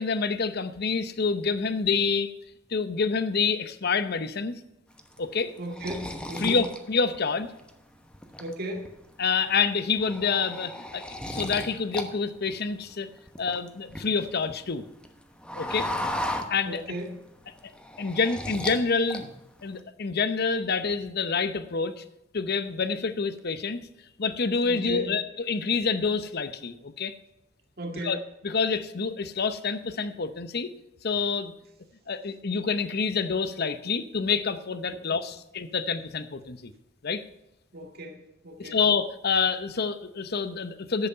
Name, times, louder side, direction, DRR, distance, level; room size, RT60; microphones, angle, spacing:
voice 1, 0.0-2.3 2.7-4.6 5.2-5.5 6.4-7.5 9.2-13.1 13.4-14.8 15.6-15.9 16.5-16.8 18.0-19.3 19.6-22.0 22.3-23.8 24.2-27.1 28.0-28.2 28.4-30.7 31.0-31.5 32.1-36.7 37.0-37.2 38.6-41.1, left 5 dB, 55° left, 12 dB, 0.8 m, -27 dB
sound 1, 5.0-7.7 8.1-8.9 9.3-9.5 9.8-12.1 12.3-14.4 14.8-17.1 17.4-18.8 19.1-19.7, left 1 dB, 5° left, 1.0 m, -35 dB
voice 2, 5.6-6.7 8.4-9.0 16.6-17.2 24.7-25.1 27.8-28.2 37.7-38.8, right 1 dB, 55° right, 2 dB, 1.9 m, -36 dB
10.5 x 8.0 x 5.6 m, 0.88 s
head